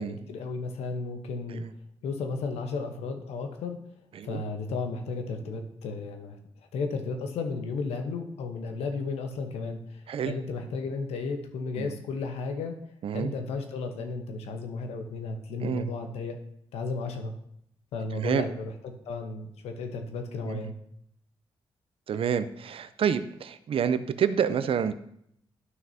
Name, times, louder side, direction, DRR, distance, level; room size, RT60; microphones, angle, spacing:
voice 1, 0.0-1.6 2.0-3.8 4.2-6.4 6.7-10.0 10.3-12.7 13.1-16.4 16.7-17.3 17.9-20.8, left 4 dB, 90° left, 5 dB, 0.9 m, -34 dB
voice 2, 13.0-13.3 15.6-15.9 18.2-18.5 20.4-20.7 22.1-24.9, right 8 dB, 65° right, 13 dB, 0.5 m, -28 dB
11.0 x 6.0 x 2.8 m, 0.72 s
cardioid pair, 65°, 10 cm